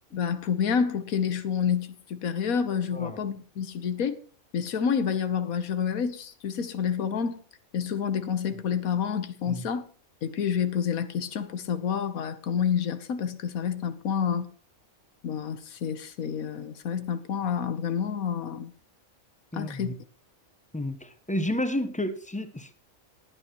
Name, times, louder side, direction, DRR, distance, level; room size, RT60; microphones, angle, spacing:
voice 1, 0.1-4.2 4.5-7.4 7.7-9.8 10.2-14.5 15.2-18.7 19.5-19.9, left 7 dB, 80° left, 1.4 m, -28 dB
voice 2, 19.5-19.9 20.7-22.8, left 1 dB, 5° left, 0.7 m, -31 dB
18.5 x 9.4 x 3.0 m
omnidirectional pair, 1.5 m